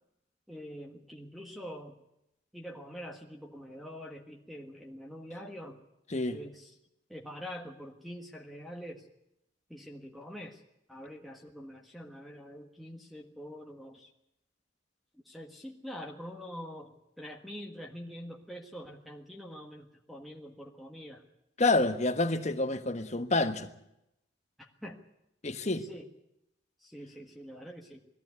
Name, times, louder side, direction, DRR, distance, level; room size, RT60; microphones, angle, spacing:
voice 1, 0.5-1.9 2.5-5.8 6.3-6.7 7.1-9.1 9.7-10.6 10.9-14.1 15.2-21.2 24.6-25.0 25.8-26.1 26.8-28.0, equal, ahead, 1.6 m, -45 dB
voice 2, 21.6-23.7 25.4-25.8, left 2 dB, 40° left, 1.3 m, -28 dB
20.0 x 15.0 x 9.5 m
head